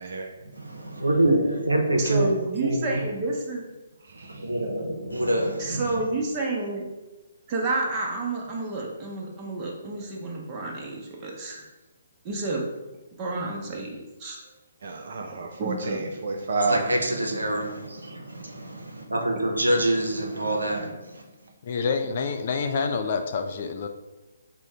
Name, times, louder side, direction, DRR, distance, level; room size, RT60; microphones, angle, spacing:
voice 1, 0.4-2.3 2.6-3.0 4.1-6.0 16.6-21.3, right 1 dB, 80° right, 2 dB, 0.7 m, -26 dB
voice 2, 2.0-3.6 5.6-6.9 7.5-11.6 12.2-12.6 13.1-14.5 15.6-16.0, right 2 dB, 25° right, -2 dB, 0.8 m, -30 dB
voice 3, 14.8-16.8, right 3 dB, 55° right, 3 dB, 0.3 m, -29 dB
voice 4, 21.6-23.9, left 5 dB, 45° left, 6 dB, 0.3 m, -27 dB
3.6 x 2.2 x 4.2 m, 1.1 s
figure-of-eight pair, 135°, 0 cm